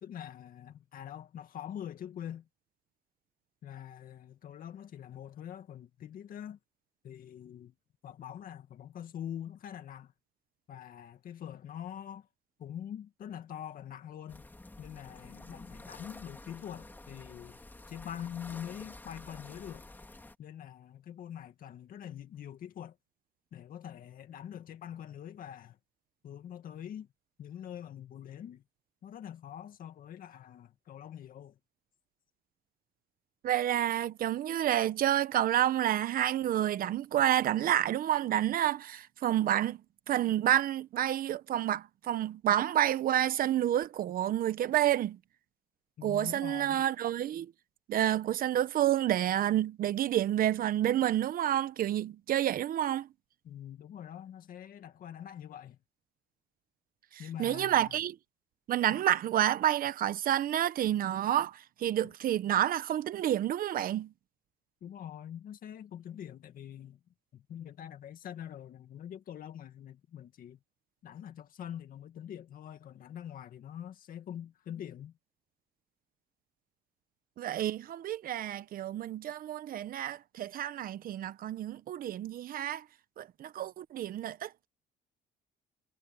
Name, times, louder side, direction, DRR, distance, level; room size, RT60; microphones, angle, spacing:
voice 1, 0.0-2.5 3.6-6.6 7.0-7.7 8.0-10.1 10.7-12.3 12.6-14.5 14.8-17.6 17.9-19.8 20.4-23.0 23.5-25.8 26.2-27.1 27.4-28.6 29.0-31.6 46.0-46.8 53.4-55.8 57.2-58.0 58.9-59.0 62.0-62.1 64.8-67.0 67.3-70.6 71.0-75.1, left 10 dB, 55° left, 2.1 m, -44 dB
sound 1, 14.3-20.4, left 2 dB, 10° left, 3.1 m, -50 dB
voice 2, 33.4-39.8 40.1-45.2 46.0-47.5 47.9-53.1 57.4-58.2 58.7-64.1 77.4-82.8 83.2-84.7, right 12 dB, 60° right, 1.0 m, -29 dB
cardioid pair, 110°, 17 cm